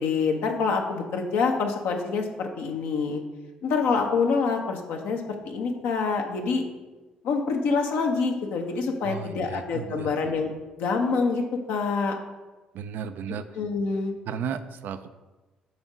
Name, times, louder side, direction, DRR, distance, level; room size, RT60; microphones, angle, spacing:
voice 1, 0.0-3.2 3.6-6.7 7.2-10.5 10.8-11.4 11.7-12.1 13.5-14.1, left 4 dB, 65° left, 3 dB, 1.0 m, -26 dB
voice 2, 9.0-10.3 12.7-13.5 14.3-15.1, right 7 dB, 60° right, 10 dB, 0.4 m, -34 dB
5.5 x 4.4 x 6.1 m, 1.2 s
figure-of-eight pair, 45°, 4 cm